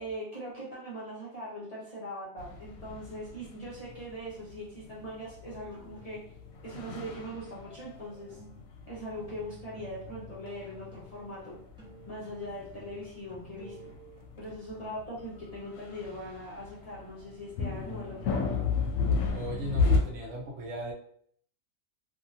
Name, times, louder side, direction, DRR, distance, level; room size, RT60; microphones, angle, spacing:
voice 1, 0.0-6.2 6.6-8.4 8.9-11.6 12.1-13.8 14.4-18.6, equal, 35° left, -7 dB, 0.7 m, -41 dB
sound 1, 2.4-20.0, left 4 dB, 80° left, 1.0 m, -34 dB
sound 2, 5.7-6.7 7.0-7.9 8.3-11.3 11.5-14.9, right 1 dB, 5° right, 0.8 m, -53 dB
voice 2, 19.3-20.9, right 1 dB, 70° right, 0 dB, 1.0 m, -37 dB
2.7 x 2.7 x 2.6 m, 0.62 s
omnidirectional pair, 1.4 m